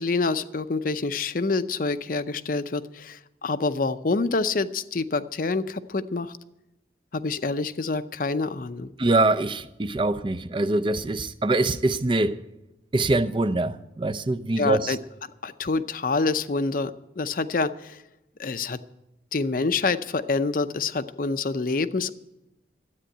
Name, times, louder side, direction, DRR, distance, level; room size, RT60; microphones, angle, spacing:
voice 1, 0.0-6.3 7.1-8.9 14.6-15.0 15.4-18.0 18.4-18.8 19.3-22.1, left 3 dB, 50° left, 0.6 m, -27 dB
voice 2, 9.0-12.4 12.9-15.0, right 2 dB, 30° right, 0.5 m, -24 dB
13.0 x 8.8 x 9.1 m
head